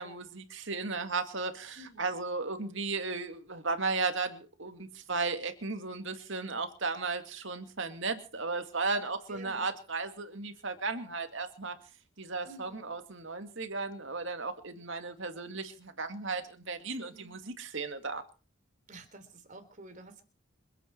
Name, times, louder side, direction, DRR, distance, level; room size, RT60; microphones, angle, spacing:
voice 1, 0.0-11.8 12.2-18.2, right 3 dB, 60° right, 7 dB, 2.3 m, -35 dB
voice 2, 1.8-2.1 9.3-9.7 12.4-12.9 16.9-17.4 18.9-20.2, right 2 dB, 35° right, 7 dB, 3.4 m, -50 dB
27.5 x 9.1 x 4.6 m, 0.37 s
head